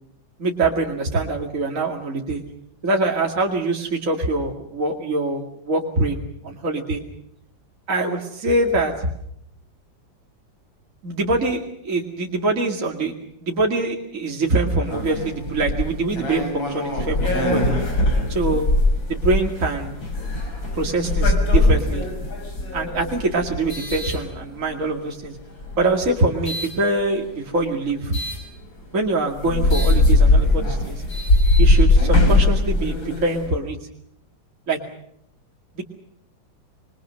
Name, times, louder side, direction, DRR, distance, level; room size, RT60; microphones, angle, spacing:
voice 1, 0.4-2.4 2.8-7.0 7.9-9.1 11.0-13.1 13.4-17.7 18.3-18.7 19.1-20.0 20.7-22.1 22.7-25.4 25.8-28.2 28.9-31.0 31.6-33.8 34.7-34.8 35.8-35.9, right 2 dB, 45° right, 1 dB, 2.6 m, -24 dB
sound 1, 14.8-24.9 25.5-26.8 28.1-28.4 28.9-29.0 29.3-33.5, left 2 dB, 90° left, 6.3 m, -20 dB
26.0 x 23.0 x 6.4 m, 0.73 s
omnidirectional pair, 2.1 m